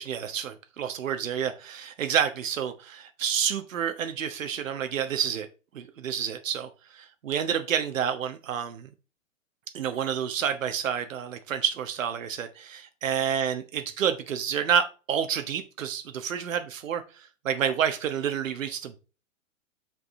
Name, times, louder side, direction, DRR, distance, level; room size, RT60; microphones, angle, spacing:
voice 1, 0.0-5.5 5.7-8.9 9.7-19.0, right 8 dB, 70° right, 8 dB, 1.3 m, -29 dB
8.0 x 5.4 x 3.6 m, 0.32 s
hypercardioid pair, 120°, 40 cm